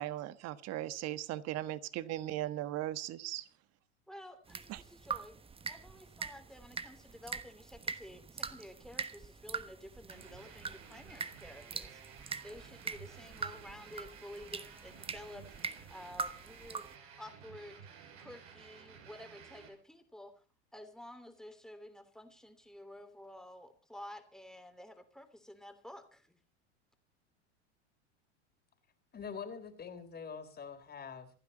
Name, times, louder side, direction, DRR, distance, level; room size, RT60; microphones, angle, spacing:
voice 1, 0.0-3.4 4.7-4.8, right 14 dB, 45° right, 14 dB, 1.4 m, -38 dB
voice 2, 4.1-16.9 17.2-20.4 20.7-26.4, left 1 dB, ahead, 8 dB, 3.1 m, -51 dB
sound 1, 4.5-16.9, right 5 dB, 15° right, 1.2 m, -43 dB
sound 2, 10.1-19.7, right 7 dB, 70° right, 6.4 m, -54 dB
voice 3, 29.1-31.3, left 6 dB, 25° left, 8 dB, 3.7 m, -44 dB
28.0 x 9.6 x 4.2 m, 0.38 s
hypercardioid pair, 90°, 35 cm